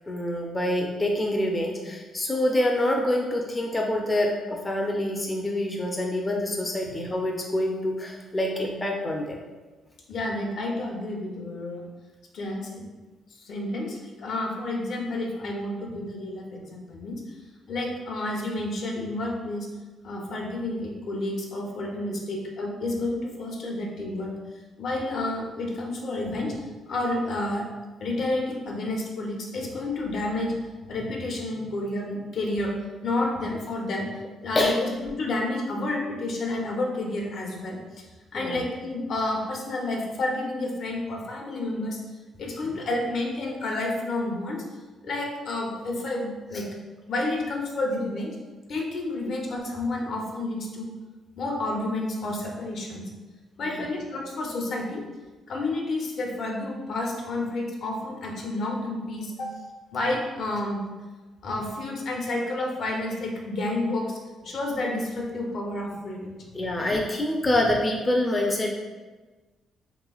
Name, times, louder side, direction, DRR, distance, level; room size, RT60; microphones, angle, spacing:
voice 1, 0.1-9.4 34.6-34.8 38.3-38.6 53.6-53.9 66.5-68.7, left 1 dB, 20° left, 0 dB, 0.4 m, -26 dB
voice 2, 10.1-11.8 12.3-12.8 13.3-17.4 17.7-19.7 20.0-24.4 24.8-27.7 28.0-30.6 30.9-32.8 33.0-34.1 34.4-38.0 38.3-42.0 42.4-44.6 45.0-46.7 47.1-48.4 48.7-50.9 51.4-53.1 53.6-55.1 55.5-59.5 59.9-60.9 61.4-64.2 64.4-66.8, left 2 dB, 65° left, 0 dB, 0.6 m, -30 dB
3.3 x 3.0 x 2.3 m, 1.3 s
cardioid pair, 90°, 0 cm